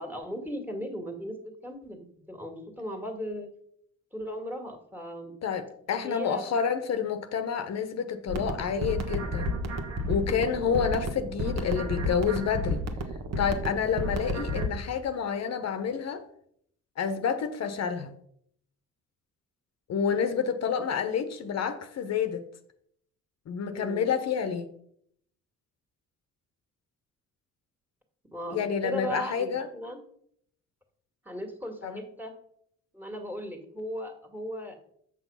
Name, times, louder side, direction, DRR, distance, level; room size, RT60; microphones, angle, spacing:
voice 1, 0.0-3.5 4.1-5.3 5.9-6.5 10.6-10.9 23.7-24.1 28.3-30.0 31.2-32.3 32.9-34.9, equal, 5° right, 2.0 m, -37 dB
voice 2, 5.4-9.5 10.1-12.8 13.4-16.2 17.0-18.1 19.9-22.4 23.5-24.7 28.5-29.7 31.8-32.0, left 7 dB, 60° left, 0.9 m, -29 dB
sound 1, 8.3-14.7, equal, 60° right, 1.4 m, -31 dB
7.7 x 6.1 x 5.5 m
cardioid pair, 90°, 30 cm